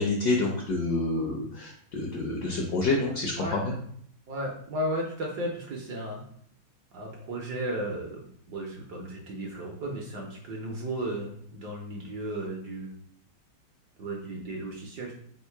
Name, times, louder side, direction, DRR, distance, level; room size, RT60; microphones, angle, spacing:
voice 1, 0.0-3.7, left 3 dB, 70° left, 0 dB, 1.0 m, -28 dB
voice 2, 4.3-6.2 6.9-12.9 14.0-15.1, right 1 dB, 65° right, 0 dB, 1.1 m, -34 dB
3.6 x 2.5 x 4.5 m, 0.64 s
omnidirectional pair, 2.3 m